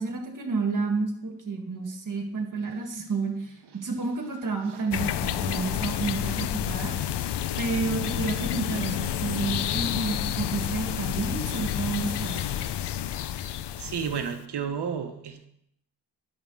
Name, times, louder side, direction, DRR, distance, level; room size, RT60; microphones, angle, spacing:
voice 1, 0.0-7.0 7.6-12.4, right 4 dB, 50° right, 1.8 m, -30 dB
sound 1, 4.9-14.4, left 11 dB, 85° left, 0.5 m, -30 dB
voice 2, 13.2-15.5, right 7 dB, 80° right, 1.1 m, -33 dB
10.5 x 3.6 x 7.0 m
cardioid pair, 70°, 40 cm